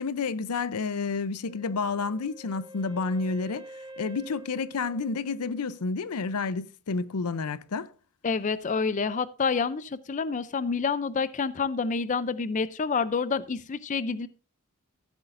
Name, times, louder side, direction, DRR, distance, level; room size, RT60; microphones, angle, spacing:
voice 1, 0.0-3.7 4.0-7.9, left 4 dB, 90° left, 0.6 m, -30 dB
Wind instrument woodwind instrument, 1.4-6.3, equal, 25° right, 1.4 m, -48 dB
voice 2, 8.2-14.3, left 5 dB, 35° left, 0.4 m, -28 dB
14.5 x 8.1 x 2.5 m
head